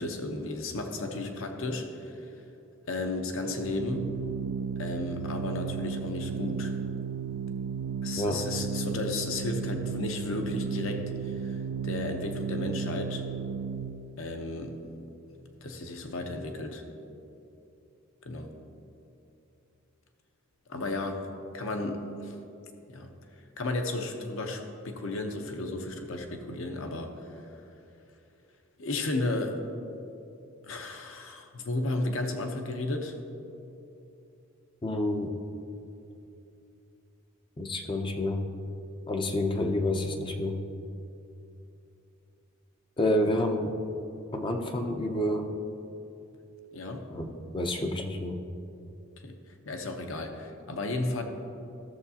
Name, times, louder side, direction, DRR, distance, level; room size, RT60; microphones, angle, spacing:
voice 1, 0.0-2.3 2.9-4.1 4.8-6.7 8.0-13.2 14.2-14.8 15.6-16.8 18.2-18.5 20.7-21.2 21.5-22.3 22.9-23.1 23.6-27.4 28.8-29.6 30.6-33.1 46.7-47.0 49.2-49.3 49.7-51.2, left 2 dB, 65° left, 5 dB, 0.8 m, -34 dB
Organ, 3.5-14.2, right 6 dB, 80° right, 0.3 m, -34 dB
voice 2, 34.8-35.3 37.6-38.4 39.1-40.6 43.0-43.8 44.3-45.5 47.1-48.4, left 1 dB, 25° left, 4 dB, 0.5 m, -29 dB
14.0 x 7.0 x 2.8 m, 2.8 s
head